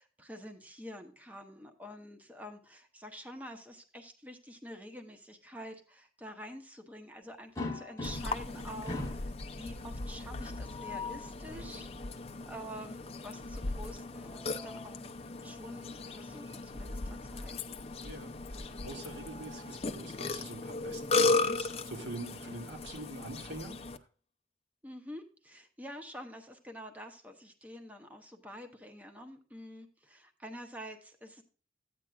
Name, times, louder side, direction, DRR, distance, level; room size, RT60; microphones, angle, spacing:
voice 1, 0.0-11.9 12.4-15.1 15.4-17.8 24.8-31.4, equal, 10° right, 6 dB, 0.8 m, -48 dB
sound 1, 7.6-8.5 8.9-9.3 10.6-11.3 14.0-15.0 16.4-16.6 17.0-17.1 18.6-19.9, left 3 dB, 15° left, 1.1 m, -42 dB
Burping eructation, 8.0-24.0, left 3 dB, 35° left, 0.6 m, -36 dB
voice 2, 11.5-11.9 18.0-24.0, right 2 dB, 85° right, 2 dB, 2.0 m, -45 dB
13.5 x 8.9 x 2.4 m, 0.39 s
head